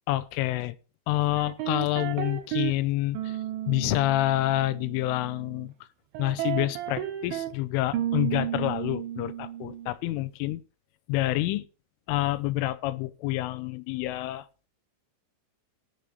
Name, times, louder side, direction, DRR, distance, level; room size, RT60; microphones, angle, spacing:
voice 1, 0.1-0.8 1.1-3.3 3.7-5.7 6.2-10.6 11.1-11.7 12.1-14.5, left 16 dB, 85° left, 3.3 m, -28 dB
sound 1, 1.4-2.8 3.2-5.7 6.2-7.5 7.9-9.9, right 12 dB, 75° right, 3.9 m, -33 dB
16.0 x 6.6 x 5.2 m
omnidirectional pair, 5.6 m